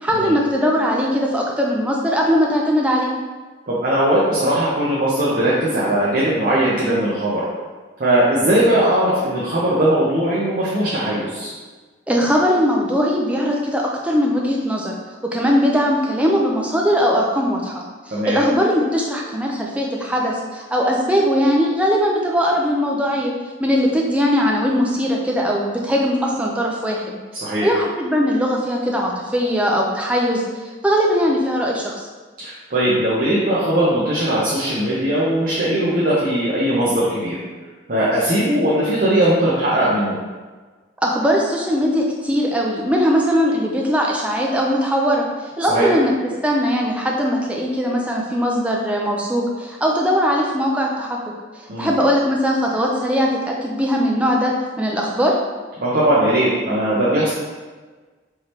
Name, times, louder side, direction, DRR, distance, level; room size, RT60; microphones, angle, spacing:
voice 1, 0.0-3.1 12.1-14.9 15.2-17.8 18.3-23.3 23.6-30.4 30.8-32.0 41.0-46.1 46.4-51.3 51.8-55.4, equal, 5° right, -2 dB, 0.4 m, -20 dB
voice 2, 3.7-7.4 8.0-11.5 18.1-18.4 27.4-27.7 32.4-37.4 37.9-40.2 45.7-45.9 51.7-51.9 55.8-57.3, right 1 dB, 45° right, -8 dB, 0.7 m, -19 dB
4.7 x 3.2 x 2.9 m, 1.4 s
head